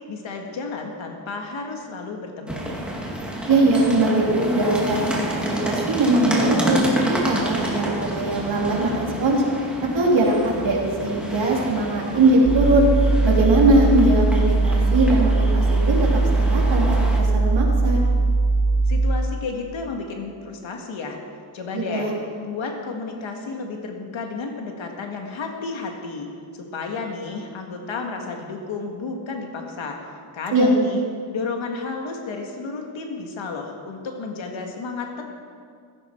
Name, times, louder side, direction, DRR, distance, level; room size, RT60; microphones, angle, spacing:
voice 1, 0.0-2.9 18.9-21.2 21.5-22.1 22.4-26.3 26.6-30.0 30.3-31.0 31.3-35.3, left 4 dB, 75° left, 2 dB, 1.9 m, -32 dB
sound 1, 2.5-17.2, right 1 dB, ahead, 2.1 m, -29 dB
voice 2, 3.5-6.9 7.2-9.4 9.8-12.8 13.2-18.0 21.7-22.1 30.5-30.7, right 2 dB, 65° right, -3 dB, 3.4 m, -21 dB
sound 2, 12.5-19.3, right 3 dB, 50° right, 2.9 m, -20 dB
16.0 x 15.0 x 4.5 m, 2.2 s
wide cardioid pair, 165°, 47 cm